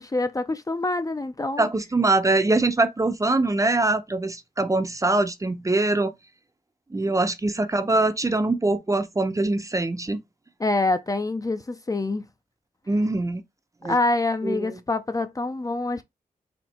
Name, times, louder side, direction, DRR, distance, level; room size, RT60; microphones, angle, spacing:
voice 1, 0.0-1.7 10.6-12.2 13.9-16.0, left 2 dB, 25° left, 0.5 m, -26 dB
voice 2, 1.6-6.1 6.9-10.2 12.9-13.4 13.8-14.0 14.4-14.8, right 2 dB, 20° right, 0.6 m, -23 dB
4.4 x 2.8 x 4.2 m
wide cardioid pair, 100°, 15 cm